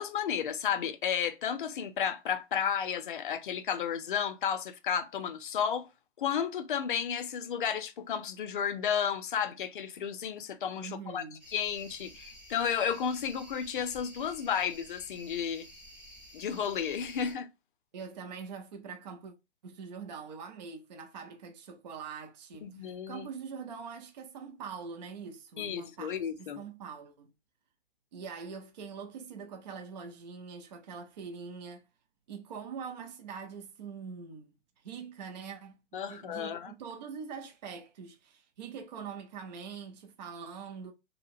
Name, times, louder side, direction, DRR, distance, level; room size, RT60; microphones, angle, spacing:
voice 1, 0.0-5.9 6.2-11.2 11.5-15.7 16.3-17.5 22.6-23.3 25.6-26.6 35.9-36.7, left 8 dB, 45° left, 0.5 m, -32 dB
voice 2, 10.8-11.4 17.9-19.3 19.6-27.3 28.1-31.9 32.3-34.5 34.8-35.8 36.1-40.9, right 6 dB, 40° right, 0.5 m, -43 dB
sound 1, 11.4-17.3, equal, 5° right, 0.7 m, -52 dB
4.4 x 2.1 x 2.4 m
figure-of-eight pair, 130°, 36 cm